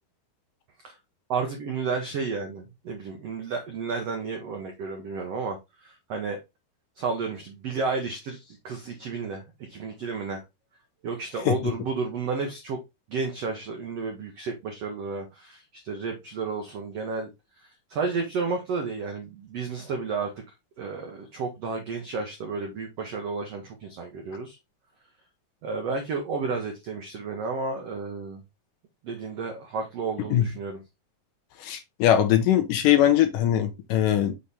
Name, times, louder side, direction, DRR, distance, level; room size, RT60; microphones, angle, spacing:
voice 1, 1.3-6.4 7.0-9.4 9.7-10.4 11.0-12.8 13.1-17.3 17.6-20.3 20.8-24.6 25.6-28.4 29.0-30.8, right 4 dB, 90° right, 1.3 m, -32 dB
voice 2, 31.6-34.3, left 11 dB, 75° left, 2.1 m, -21 dB
6.5 x 4.3 x 3.5 m
omnidirectional pair, 4.5 m